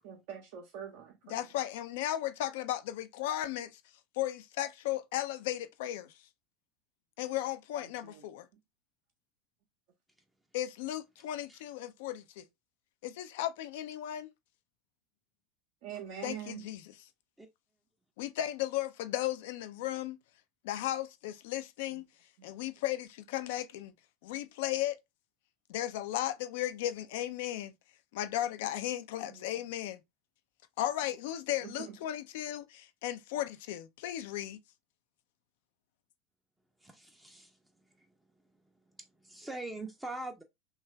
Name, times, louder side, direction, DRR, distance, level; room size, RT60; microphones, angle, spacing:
voice 1, 0.0-1.5 8.0-8.2 15.8-16.7 22.4-22.5 29.3-29.4 31.6-31.9, right 9 dB, 55° right, 0.6 m, -44 dB
voice 2, 1.3-3.8 4.2-6.1 7.2-8.5 10.5-12.4 13.0-14.3 16.2-16.9 18.2-20.2 20.6-22.1 22.4-23.9 24.2-25.0 25.7-27.7 28.1-30.0 30.8-34.6, left 13 dB, 60° left, 0.4 m, -35 dB
voice 3, 36.8-37.6 38.0-38.1 39.0-40.4, right 2 dB, 5° right, 0.5 m, -42 dB
3.0 x 2.3 x 3.0 m
figure-of-eight pair, 75°, 0 cm